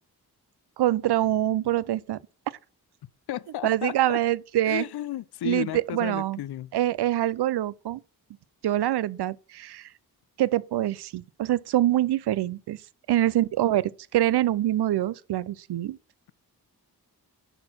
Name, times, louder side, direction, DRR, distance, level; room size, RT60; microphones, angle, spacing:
voice 1, 0.8-2.2 3.6-4.8 5.4-5.7 5.9-6.4 6.7-8.0 8.6-9.9 10.4-12.8 13.1-16.0, right 13 dB, 90° right, 0.5 m, -25 dB
voice 2, 3.3-4.2 4.6-6.7, left 11 dB, 85° left, 0.5 m, -33 dB
11.0 x 4.3 x 6.0 m
cardioid pair, 65°, 38 cm